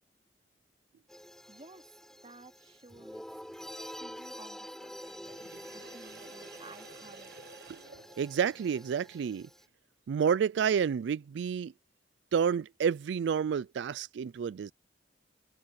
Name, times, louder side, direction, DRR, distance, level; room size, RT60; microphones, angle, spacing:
sound 1, 1.1-9.6, equal, 5° left, 7.1 m, -47 dB
voice 1, 1.5-2.0 2.2-3.4 3.8-5.4 5.7-7.3, right 2 dB, 35° right, 2.9 m, -54 dB
Sink (filling or washing), 4.9-8.9, right 4 dB, 70° right, 6.5 m, -53 dB
voice 2, 8.2-9.5 10.1-11.7 12.3-14.7, right 7 dB, 85° right, 0.3 m, -29 dB
head